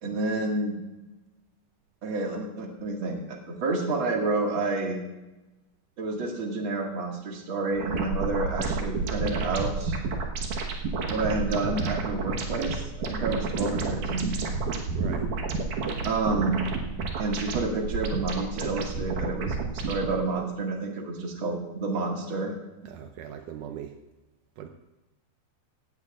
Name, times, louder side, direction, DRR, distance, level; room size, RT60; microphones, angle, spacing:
voice 1, 0.0-0.8 2.0-5.0 6.0-10.0 11.1-14.3 16.0-16.6 17.2-22.5, right 3 dB, 40° right, 0 dB, 2.2 m, -29 dB
sound 1, 7.8-20.1, right 4 dB, 65° right, 2.5 m, -30 dB
voice 2, 14.9-15.3 22.9-24.0 24.6-24.7, right 9 dB, 80° right, 5 dB, 1.8 m, -40 dB
17.0 x 16.5 x 2.5 m, 1.1 s
omnidirectional pair, 4.5 m